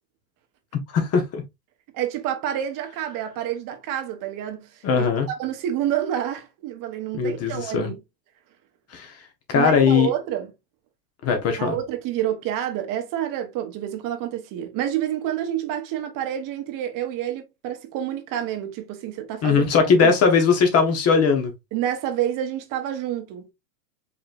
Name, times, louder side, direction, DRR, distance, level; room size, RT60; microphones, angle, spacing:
voice 1, 0.9-1.4 4.8-5.3 7.1-7.9 8.9-9.2 9.5-10.1 11.2-11.8 19.4-21.5, left 5 dB, 30° left, 1.0 m, -19 dB
voice 2, 1.9-8.0 9.5-10.5 11.6-20.1 21.7-23.5, right 11 dB, 40° right, 1.1 m, -28 dB
5.1 x 3.1 x 2.5 m
hypercardioid pair, 115°, 49 cm